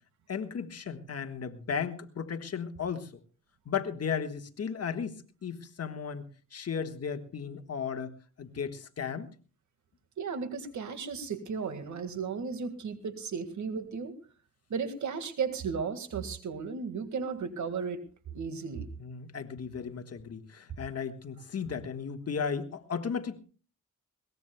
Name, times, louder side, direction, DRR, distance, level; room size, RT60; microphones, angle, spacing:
voice 1, 0.3-3.1 3.6-5.2 5.4-6.2 6.5-9.3 19.0-23.4, left 6 dB, 55° left, 7 dB, 1.5 m, -35 dB
voice 2, 10.2-14.1 14.7-18.0 18.3-18.9, right 5 dB, 70° right, 9 dB, 1.9 m, -35 dB
21.5 x 18.5 x 2.2 m, 0.37 s
cardioid pair, 80°, 30 cm